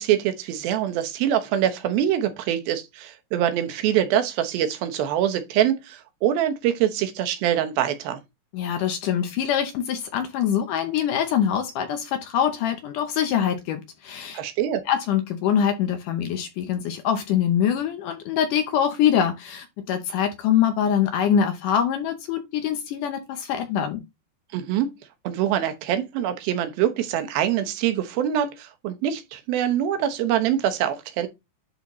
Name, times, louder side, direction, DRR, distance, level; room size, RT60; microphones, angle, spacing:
voice 1, 0.0-8.2 14.3-14.9 24.5-24.9 25.2-31.3, right 10 dB, 70° right, 2.7 m, -24 dB
voice 2, 8.5-14.4 14.9-24.0, left 9 dB, 75° left, 2.0 m, -24 dB
11.0 x 4.1 x 3.1 m
omnidirectional pair, 4.6 m